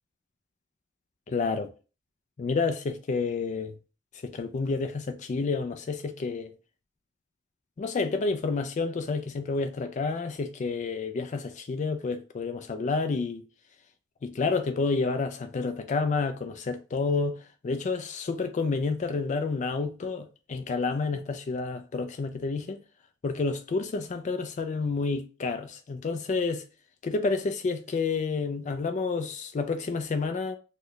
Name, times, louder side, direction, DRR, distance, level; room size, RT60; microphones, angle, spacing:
voice 1, 1.3-1.7 2.4-3.7 4.2-6.5 7.8-13.4 14.2-17.4 17.6-22.8 23.2-26.6 27.0-30.6, left 4 dB, 40° left, 0.3 m, -29 dB
3.1 x 2.1 x 3.8 m
head